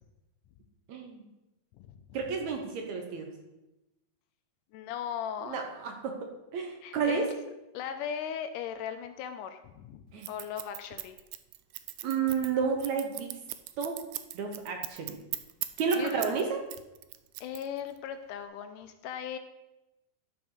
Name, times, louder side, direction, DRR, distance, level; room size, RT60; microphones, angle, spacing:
voice 1, 0.9-1.3 2.1-3.3 5.4-7.3 10.1-10.3 12.0-13.4 13.8-14.0 14.3-15.2 15.8-16.6, right 5 dB, 65° right, 3 dB, 2.1 m, -31 dB
voice 2, 4.7-5.6 6.8-7.3 7.7-10.0 10.3-11.2 16.0-16.3 17.4-19.4, left 8 dB, 80° left, 9 dB, 2.0 m, -38 dB
Scissors, 10.2-16.4 16.7-18.0, right 15 dB, 90° right, 1.6 m, -38 dB
12.0 x 6.1 x 4.9 m, 0.98 s
omnidirectional pair, 3.9 m